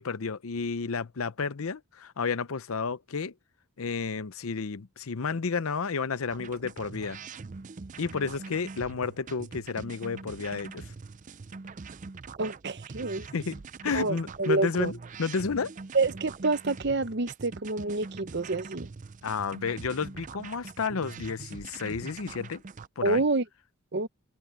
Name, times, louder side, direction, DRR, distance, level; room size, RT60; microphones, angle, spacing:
voice 1, 0.0-3.3 3.8-7.2 8.0-10.8 13.3-15.7 19.2-22.6 23.0-23.2, left 5 dB, 80° left, 0.7 m, -31 dB
sound 1, 6.3-22.9, right 4 dB, 35° right, 0.5 m, -43 dB
voice 2, 12.4-13.3 13.9-14.9 15.9-18.9 23.0-23.4 23.9-24.1, right 3 dB, 50° right, 0.8 m, -28 dB
head